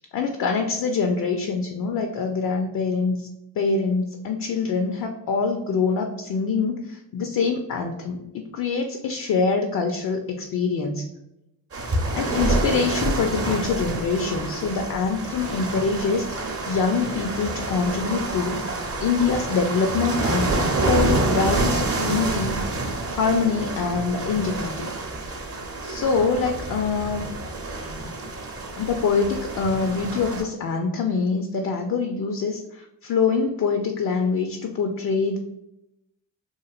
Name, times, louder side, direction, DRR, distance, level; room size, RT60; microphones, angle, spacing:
voice 1, 0.0-3.3 3.6-11.0 12.2-18.6 19.0-22.6 23.1-24.9 25.8-27.3 28.7-35.4, left 5 dB, 50° left, 4 dB, 0.5 m, -25 dB
sound 1, 11.7-30.4, right 2 dB, 30° right, 0.7 m, -27 dB
3.1 x 2.4 x 2.3 m, 0.87 s
supercardioid pair, 55°, 45 cm